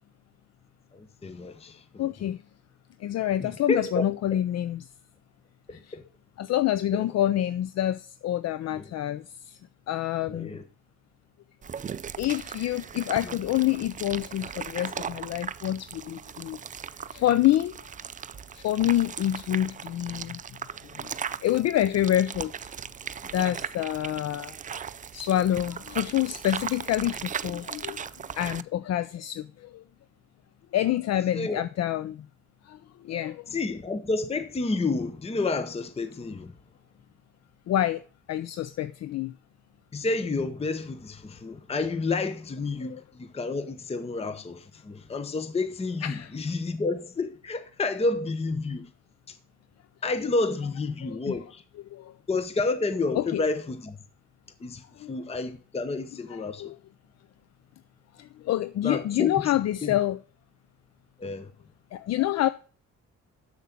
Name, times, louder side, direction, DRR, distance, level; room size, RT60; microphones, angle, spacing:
voice 1, 0.9-2.1 3.4-4.0 4.3-4.4 5.7-6.0 6.9-7.1 8.8-8.9 10.3-10.6 31.3-31.6 33.5-36.5 39.9-48.9 49.3-49.4 50.0-51.6 52.3-54.0 54.6-56.7 58.8-59.5 59.8-59.9 61.2-61.5, left 3 dB, 20° left, 0.8 m, -30 dB
voice 2, 2.0-2.4 3.0-4.9 5.7-5.9 6.4-10.6 12.2-16.6 17.1-17.9 18.5-20.4 20.9-22.7 23.3-24.6 25.1-29.8 30.7-32.3 32.6-33.5 37.7-39.3 42.8-43.0 46.0-46.3 51.0-51.3 51.9-52.2 53.2-53.5 54.9-55.1 56.3-56.8 58.1-60.2 61.9-62.5, left 12 dB, 60° left, 0.5 m, -27 dB
sound 1, 11.6-28.6, right 7 dB, 25° right, 0.4 m, -38 dB
7.4 x 7.2 x 5.8 m
cardioid pair, 90°, 30 cm